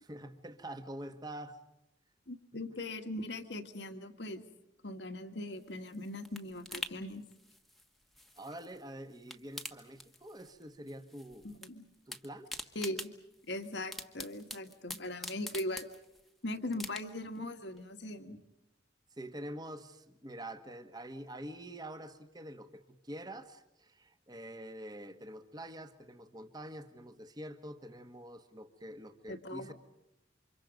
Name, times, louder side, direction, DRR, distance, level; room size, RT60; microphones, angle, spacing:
voice 1, 0.0-1.6 8.4-11.4 12.1-12.5 19.1-29.7, right 1 dB, 20° right, 9 dB, 1.6 m, -46 dB
voice 2, 2.3-4.4 4.8-7.2 11.4-11.8 12.8-13.1 13.4-15.9 16.4-18.4 29.3-29.7, left 1 dB, 65° left, 8 dB, 2.0 m, -40 dB
sound 1, 5.5-8.8 9.1-10.6 10.9-11.7 11.9-16.3 16.7-17.4 17.8-17.9, left 1 dB, ahead, 1.3 m, -45 dB
29.0 x 26.0 x 5.3 m, 0.89 s
head